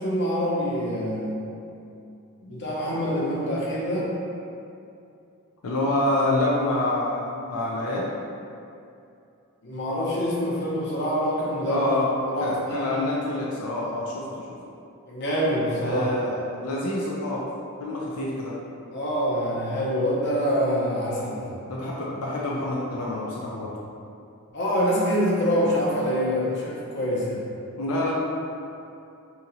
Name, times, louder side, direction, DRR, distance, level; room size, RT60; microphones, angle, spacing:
voice 1, 0.0-1.4 2.4-4.2 9.6-13.0 15.1-16.1 18.9-21.5 24.5-27.4, equal, 55° left, -6 dB, 0.7 m, -25 dB
voice 2, 5.6-8.1 11.7-12.0 12.4-14.4 15.8-17.4 17.8-18.5 21.7-23.7 27.8-28.1, left 1 dB, 90° left, -5 dB, 0.5 m, -27 dB
2.8 x 2.8 x 3.8 m, 2.6 s
head